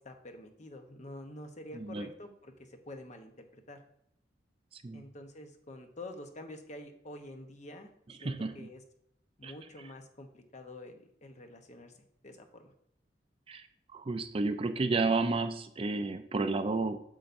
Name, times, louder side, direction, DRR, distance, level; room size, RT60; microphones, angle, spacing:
voice 1, 0.0-3.8 4.9-7.9 8.2-8.8 9.4-11.9 12.2-12.7, left 1 dB, 40° left, 5 dB, 0.9 m, -47 dB
voice 2, 1.7-2.1 4.7-5.0 8.2-8.7 9.4-9.5 13.5-13.7 13.9-17.0, right 3 dB, 30° right, 8 dB, 0.4 m, -31 dB
8.7 x 6.7 x 2.6 m, 0.72 s
head